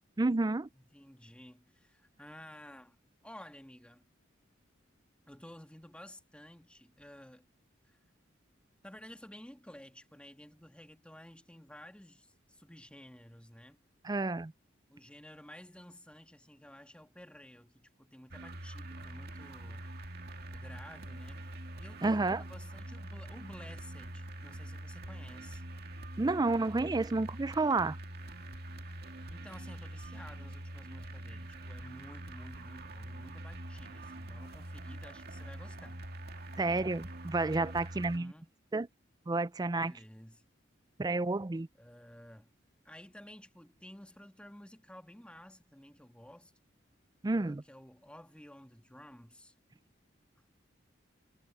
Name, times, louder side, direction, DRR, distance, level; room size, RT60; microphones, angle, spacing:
voice 1, 0.2-0.7 14.0-14.5 22.0-22.4 26.2-28.0 36.6-38.3 38.7-38.9 39.3-39.9 41.0-41.7 47.2-47.6, right 3 dB, 20° right, 0.4 m, -30 dB
voice 2, 0.7-3.0 3.2-4.1 5.3-7.5 7.8-8.0 8.8-13.8 14.9-19.9 20.5-25.6 29.3-36.0 37.9-38.5 39.7-40.5 41.7-42.5 42.8-46.5 47.3-49.5, left 1 dB, 5° left, 1.7 m, -53 dB
sound 1, 18.3-38.2, right 1 dB, 55° right, 2.3 m, -45 dB
head